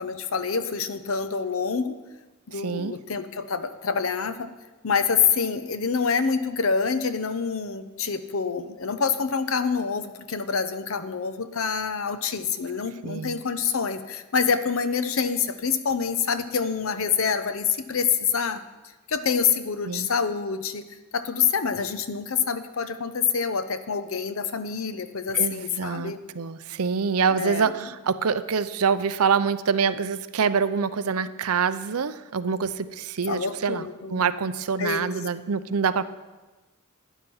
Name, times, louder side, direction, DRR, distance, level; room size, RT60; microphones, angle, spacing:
voice 1, 0.0-2.0 2.5-4.5 4.8-18.6 19.1-20.8 21.1-26.2 27.3-27.8 33.3-34.2 34.8-35.1, left 6 dB, 65° left, 11 dB, 0.8 m, -26 dB
voice 2, 2.5-3.0 13.0-13.4 19.9-20.1 25.3-36.1, right 6 dB, 80° right, 13 dB, 0.6 m, -26 dB
12.0 x 10.5 x 5.6 m, 1.2 s
head